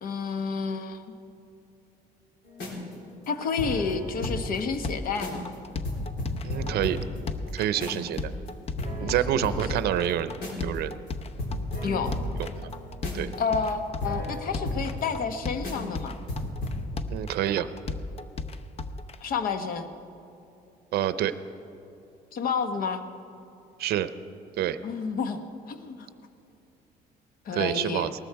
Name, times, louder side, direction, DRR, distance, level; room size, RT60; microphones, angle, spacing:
voice 1, 0.0-1.0 3.3-5.5 9.0-9.6 11.8-12.1 13.4-16.2 19.2-19.9 22.3-23.0 24.8-25.4 25.7-26.1 27.4-28.1, left 5 dB, 60° left, 9 dB, 1.1 m, -30 dB
sound 1, 2.5-4.6 4.9-5.0 5.2-5.5 5.8-8.2 8.5-8.6 8.8-10.8 11.1-11.2 11.4-15.3 15.6-16.0 16.3-16.8, left 1 dB, 80° left, 3.8 m, -34 dB
sound 2, 4.2-19.2, left 3 dB, 35° left, 0.7 m, -36 dB
voice 2, 6.4-7.0 7.5-8.3 9.0-10.3 10.6-10.9 13.1-13.3 17.1-17.7 20.9-21.3 23.8-24.1 24.6-24.8 27.5-28.1, right 11 dB, 70° right, 13 dB, 0.6 m, -27 dB
19.0 x 13.5 x 4.7 m, 2.8 s
cardioid pair, 110°, 17 cm